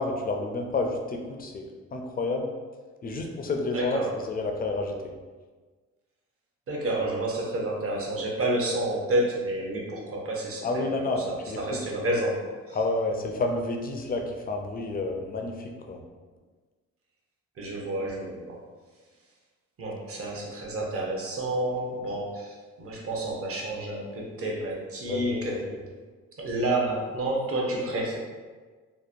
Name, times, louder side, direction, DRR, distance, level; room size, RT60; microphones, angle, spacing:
voice 1, 0.0-2.5 3.0-5.1 10.6-11.2 11.5-11.8 12.7-16.0 25.1-25.8, left 3 dB, 30° left, 3 dB, 0.4 m, -30 dB
voice 2, 3.7-4.1 6.7-12.4 12.7-12.8 17.6-18.6 19.8-25.6 26.4-28.2, right 1 dB, 50° right, -2 dB, 0.7 m, -30 dB
2.9 x 2.0 x 2.4 m, 1.4 s
cardioid pair, 80°, 30 cm